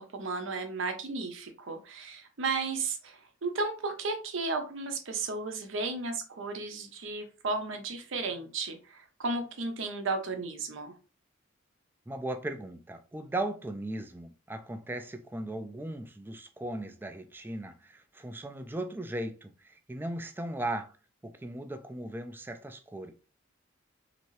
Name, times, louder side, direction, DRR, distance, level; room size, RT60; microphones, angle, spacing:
voice 1, 0.0-10.9, right 3 dB, 70° right, 0.7 m, -34 dB
voice 2, 12.1-20.9 21.2-23.1, right 1 dB, 10° right, 0.3 m, -37 dB
2.9 x 2.7 x 3.0 m
head